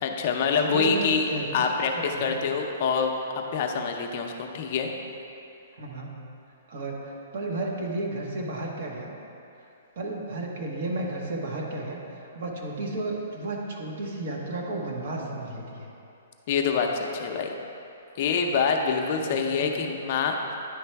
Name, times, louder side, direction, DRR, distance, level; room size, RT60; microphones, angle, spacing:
voice 1, 0.0-1.2 1.5-1.9 2.2-3.1 3.5-4.9 16.5-17.5 18.2-20.6, left 5 dB, 40° left, 3 dB, 0.5 m, -26 dB
voice 2, 0.5-1.7 1.9-2.4 5.8-6.1 6.7-9.1 9.6-9.7 10.0-15.9 19.2-19.9, right 2 dB, 55° right, -1 dB, 1.1 m, -33 dB
9.7 x 3.3 x 4.5 m, 2.7 s
hypercardioid pair, 165°, 0 cm